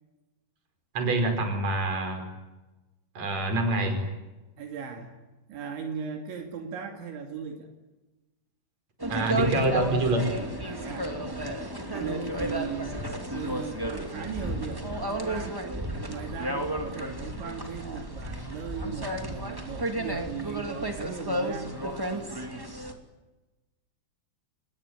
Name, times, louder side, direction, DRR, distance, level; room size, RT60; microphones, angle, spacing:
voice 1, 0.9-2.2 3.2-4.0 9.1-10.3, right 2 dB, 35° right, 6 dB, 5.9 m, -26 dB
voice 2, 4.6-5.1 5.5-7.7 10.6-11.6 11.9-13.0 13.3-15.6 16.1-21.8, right 6 dB, 75° right, 3 dB, 4.8 m, -37 dB
sound 1, 9.0-22.9, right 1 dB, 10° right, 1.0 m, -33 dB
28.0 x 21.0 x 9.5 m, 1.1 s
omnidirectional pair, 5.4 m